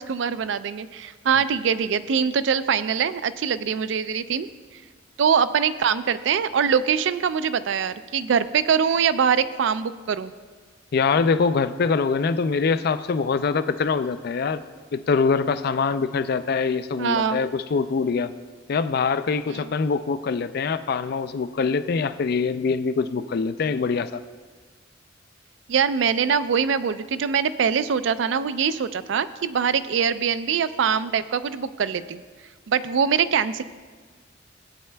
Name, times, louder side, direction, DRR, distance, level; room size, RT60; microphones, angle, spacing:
voice 1, 0.0-4.5 5.2-10.3 17.0-17.4 19.5-19.7 25.7-32.2 32.7-33.6, right 7 dB, 65° right, 14 dB, 0.4 m, -23 dB
voice 2, 10.9-14.6 14.9-18.3 18.7-24.2, left 5 dB, 50° left, 12 dB, 0.4 m, -24 dB
16.5 x 8.7 x 2.2 m, 1.5 s
head